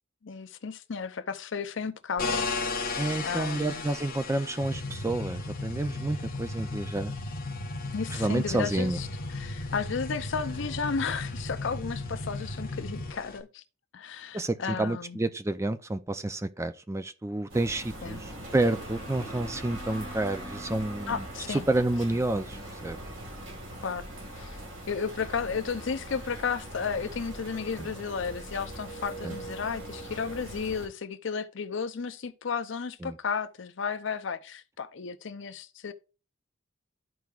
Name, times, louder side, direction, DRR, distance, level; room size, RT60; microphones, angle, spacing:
voice 1, 0.2-2.5 3.2-3.9 7.9-13.6 13.9-15.2 18.0-18.2 21.1-21.7 23.8-24.1 24.3-24.6 24.9-35.9, left 5 dB, 65° left, 0.6 m, -33 dB
sound 1, 2.2-13.4, left 4 dB, 45° left, 1.3 m, -38 dB
voice 2, 3.0-7.1 8.1-9.0 14.3-23.0 27.8-27.9 29.2-29.4 33.0-33.2, right 2 dB, 15° right, 0.4 m, -29 dB
sound 2, 4.6-13.1, left 1 dB, 85° left, 1.1 m, -36 dB
sound 3, 17.5-30.9, right 1 dB, 70° right, 2.1 m, -41 dB
13.5 x 4.6 x 2.4 m
head